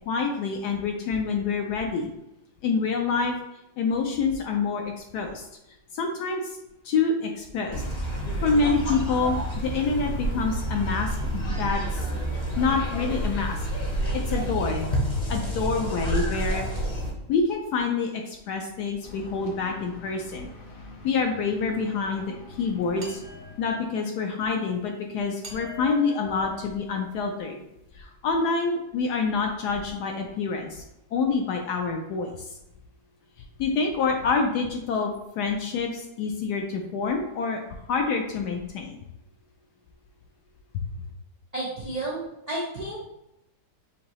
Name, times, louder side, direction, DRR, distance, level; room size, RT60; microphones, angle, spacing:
voice 1, 0.1-2.1 2.6-3.3 3.8-5.5 5.9-6.6 6.8-7.8 8.4-11.2 11.5-12.1 12.6-13.7 14.1-14.9 15.2-16.7 17.3-20.5 21.0-23.2 23.6-27.6 27.9-30.8 31.1-32.6 33.6-39.0 40.7-40.9, left 4 dB, 75° left, 2 dB, 1.0 m, -27 dB
sound 1, 7.7-17.1, right 1 dB, 35° left, 0.7 m, -29 dB
sound 2, 19.0-24.0, left 3 dB, 90° left, 0.4 m, -46 dB
sound 3, 23.0-24.1 25.4-27.3, left 5 dB, 35° right, 0.7 m, -43 dB
voice 2, 41.5-43.0, right 2 dB, 85° right, -6 dB, 0.3 m, -32 dB
5.7 x 2.7 x 3.0 m, 0.87 s
omnidirectional pair, 2.0 m